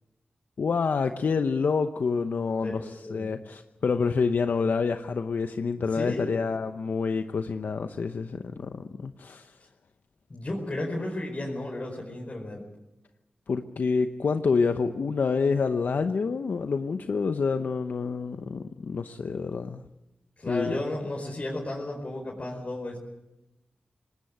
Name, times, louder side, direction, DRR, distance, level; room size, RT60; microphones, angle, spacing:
voice 1, 0.6-9.6 13.5-19.8 20.5-20.8, left 5 dB, 75° left, 8 dB, 0.9 m, -27 dB
voice 2, 5.9-6.3 10.3-12.7 20.4-23.0, left 1 dB, 45° left, -1 dB, 4.9 m, -33 dB
19.5 x 19.5 x 8.6 m, 0.96 s
cardioid pair, 60°, 3 cm